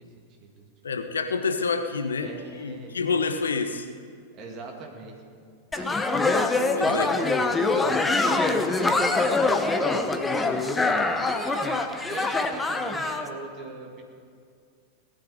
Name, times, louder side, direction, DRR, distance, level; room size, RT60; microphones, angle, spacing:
voice 1, 0.0-0.7 1.0-1.1 2.2-3.0 4.3-5.2 5.7-6.0 6.8-11.1 11.4-14.0, right 3 dB, 35° right, 1 dB, 2.2 m, -40 dB
voice 2, 0.8-3.8 6.7-7.1, left 4 dB, 70° left, 8 dB, 0.9 m, -28 dB
sound 1, 5.7-13.2, left 3 dB, 10° left, 0.9 m, -24 dB
18.5 x 11.0 x 4.9 m, 2.2 s
figure-of-eight pair, 90°, 0 cm